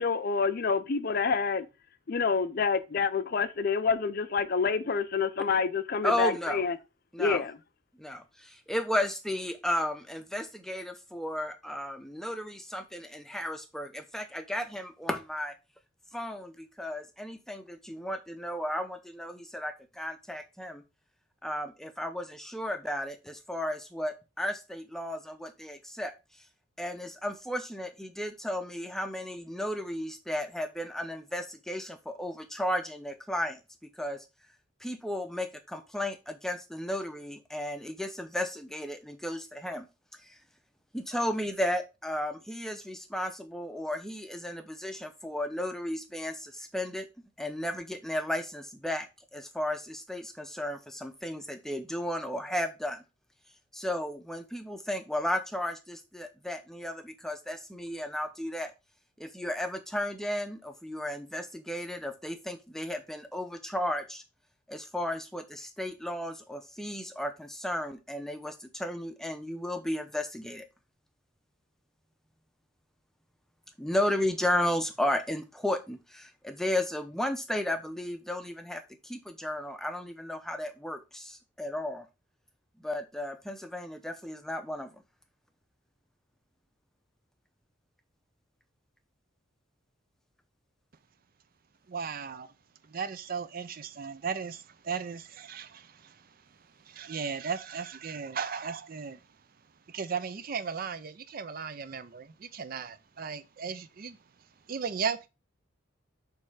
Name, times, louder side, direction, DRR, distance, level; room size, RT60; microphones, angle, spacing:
voice 1, 0.0-1.7 2.1-6.7 7.2-7.5, left 5 dB, 45° left, 0.4 m, -27 dB
voice 2, 6.0-6.6 7.1-7.4 8.0-15.6 16.1-20.8 21.4-26.1 26.8-34.2 34.8-39.9 40.2-40.4 40.9-47.1 47.4-53.0 53.7-58.7 59.2-64.2 64.7-70.7 73.8-82.1 82.8-85.0, left 1 dB, ahead, 0.6 m, -34 dB
voice 3, 91.9-92.5 92.8-99.3 99.9-104.2 104.7-105.3, right 6 dB, 45° right, 0.5 m, -36 dB
6.5 x 3.3 x 4.8 m
head